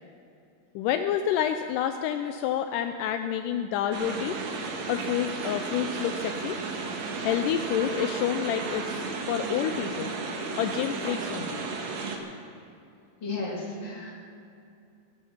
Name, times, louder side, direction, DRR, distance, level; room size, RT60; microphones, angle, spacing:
voice 1, 0.8-4.4 4.9-6.6 7.2-10.2 10.6-11.7, left 9 dB, 85° left, 7 dB, 2.1 m, -29 dB
sound 1, 3.9-12.2, right 4 dB, 60° right, 2.4 m, -33 dB
voice 2, 13.2-14.1, left 3 dB, 35° left, -4 dB, 3.4 m, -33 dB
22.0 x 9.0 x 5.8 m, 2.5 s
omnidirectional pair, 3.9 m